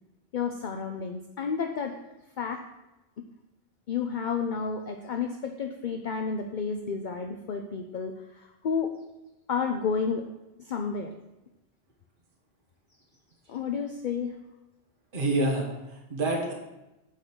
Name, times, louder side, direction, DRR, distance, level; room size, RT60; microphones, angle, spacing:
voice 1, 0.3-2.0 2.4-2.6 3.2-3.3 3.9-8.9 9.5-10.2 10.6-11.1 13.5-14.3, left 6 dB, 55° left, 4 dB, 0.7 m, -31 dB
voice 2, 15.1-16.5, right 2 dB, 55° right, -1 dB, 1.5 m, -27 dB
8.4 x 5.2 x 6.1 m, 0.99 s
omnidirectional pair, 1.1 m